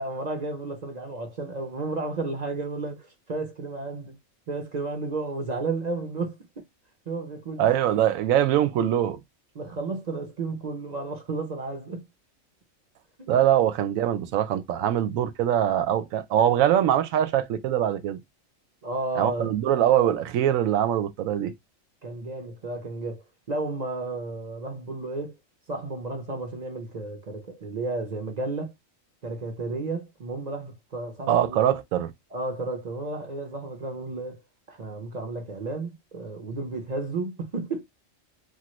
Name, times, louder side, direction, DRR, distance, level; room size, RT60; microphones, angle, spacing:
voice 1, 0.0-4.2 4.5-6.4 7.1-7.7 9.5-12.0 13.2-13.3 18.8-19.5 22.0-25.3 25.7-28.7 29.2-31.8 32.3-34.4 34.7-37.8, right 3 dB, 50° right, 0.5 m, -32 dB
voice 2, 7.6-9.2 13.3-18.2 19.2-21.5 31.3-32.1, right 10 dB, 90° right, 1.0 m, -23 dB
3.0 x 2.3 x 3.0 m
omnidirectional pair, 1.4 m